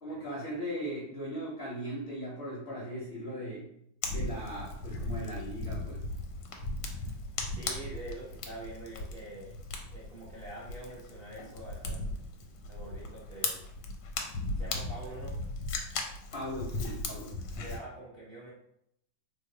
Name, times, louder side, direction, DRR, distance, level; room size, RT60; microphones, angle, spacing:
voice 1, 0.0-3.7 4.1-6.0 16.3-17.3, equal, 65° left, -5 dB, 0.6 m, -38 dB
Fire, 4.0-17.8, left 2 dB, 85° left, 1.3 m, -37 dB
voice 2, 7.5-9.5 9.9-12.1 12.7-13.6 14.6-15.4 17.6-18.5, right 2 dB, 55° right, -7 dB, 0.6 m, -45 dB
2.9 x 2.0 x 3.7 m, 0.75 s
omnidirectional pair, 1.9 m